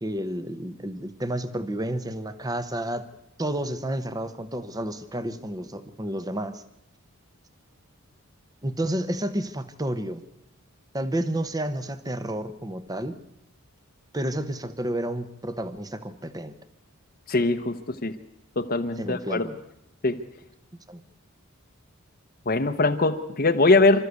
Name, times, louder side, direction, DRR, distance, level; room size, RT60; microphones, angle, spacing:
voice 1, 0.0-3.1 3.4-6.6 8.6-10.2 10.9-13.2 14.1-16.5 19.0-19.6 20.9-21.0, right 1 dB, 15° right, 11 dB, 0.9 m, -30 dB
voice 2, 17.3-17.8 18.0-18.2 18.6-19.4 20.0-20.2 22.5-24.0, left 3 dB, 40° left, 6 dB, 0.9 m, -21 dB
27.0 x 13.0 x 8.2 m, 0.83 s
head